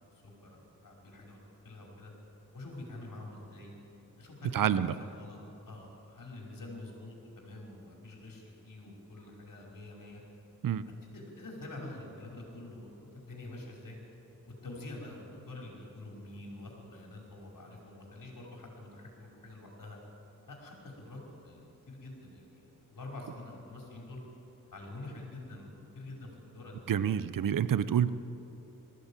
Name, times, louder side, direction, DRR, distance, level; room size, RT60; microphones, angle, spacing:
voice 1, 0.0-1.4 1.6-2.1 2.5-3.7 4.2-5.4 5.6-10.2 11.1-14.0 14.5-20.0 20.5-24.2 24.7-26.8, left 2 dB, 65° left, -1 dB, 5.3 m, -46 dB
voice 2, 4.5-4.9 10.6-10.8 26.9-28.1, right 9 dB, 65° right, 15 dB, 0.7 m, -27 dB
19.5 x 15.0 x 8.9 m, 2.9 s
cardioid pair, 50°, 35 cm